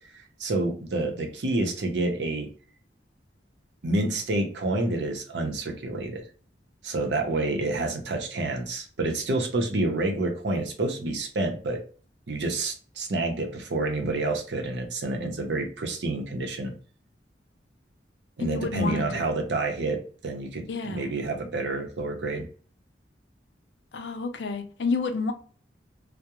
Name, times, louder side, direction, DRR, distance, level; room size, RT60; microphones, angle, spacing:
voice 1, 0.4-2.5 3.8-6.2 6.8-11.8 12.3-16.7 18.4-22.4, right 2 dB, 80° right, 0.6 m, -28 dB
voice 2, 18.4-19.0 20.7-21.1 23.9-25.3, left 4 dB, 85° left, 0.5 m, -29 dB
2.3 x 2.0 x 2.8 m
head